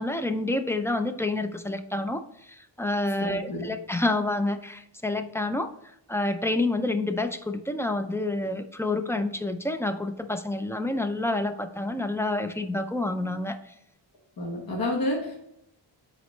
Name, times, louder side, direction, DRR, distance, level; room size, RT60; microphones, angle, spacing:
voice 1, 0.0-5.7 6.1-13.6, left 2 dB, 5° left, 7 dB, 0.3 m, -28 dB
voice 2, 3.2-3.7 14.4-15.3, left 1 dB, 50° left, -2 dB, 1.3 m, -29 dB
9.3 x 4.1 x 3.2 m, 0.78 s
wide cardioid pair, 125°, 46 cm